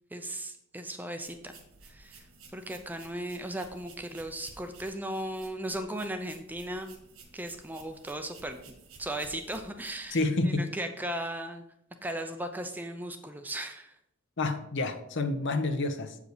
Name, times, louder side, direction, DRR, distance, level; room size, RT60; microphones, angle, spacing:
voice 1, 0.1-1.5 1.8-2.3 2.5-6.9 7.3-8.6 9.0-10.2 10.4-11.6 12.0-13.9, right 1 dB, 10° right, 7 dB, 0.5 m, -36 dB
sound 1, 1.2-10.2, right 4 dB, 70° right, 1.6 m, -54 dB
voice 2, 10.1-10.7 14.4-16.2, left 2 dB, 60° left, 8 dB, 0.8 m, -29 dB
7.9 x 5.0 x 4.9 m, 0.78 s
head